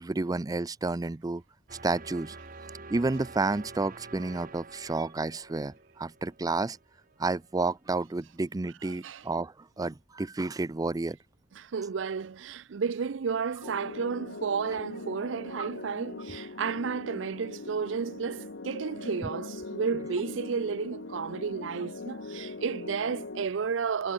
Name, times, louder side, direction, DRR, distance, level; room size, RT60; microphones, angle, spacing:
voice 1, 0.0-1.4 1.8-2.4 2.9-6.8 7.2-11.2 15.6-15.7, right 3 dB, 20° right, 0.4 m, -30 dB
sound 1, 1.7-7.7, right 3 dB, 50° right, 3.3 m, -48 dB
voice 2, 8.8-9.2 11.5-24.1, right 6 dB, 75° right, 0.5 m, -32 dB
sound 2, 13.6-23.5, left 3 dB, 70° left, 1.1 m, -41 dB
head